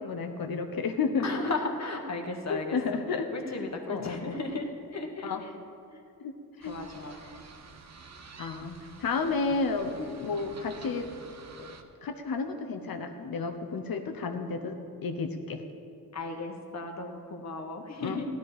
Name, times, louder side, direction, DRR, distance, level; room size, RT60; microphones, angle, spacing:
voice 1, 0.0-1.3 2.5-3.3 3.9-4.4 5.2-5.4 6.2-6.7 8.4-9.9 10.2-11.1 11.6-11.7 12.0-15.6 18.0-18.2, left 4 dB, 65° left, 6 dB, 1.0 m, -32 dB
voice 2, 1.2-2.8 3.3-5.5 5.9-6.0 6.7-7.2 10.0-10.1 16.1-18.3, left 3 dB, 45° left, 3 dB, 1.5 m, -35 dB
sound 1, 6.6-11.8, right 4 dB, 45° right, 0.9 m, -49 dB
14.0 x 12.0 x 5.0 m, 2.5 s
cardioid pair, 90°, 37 cm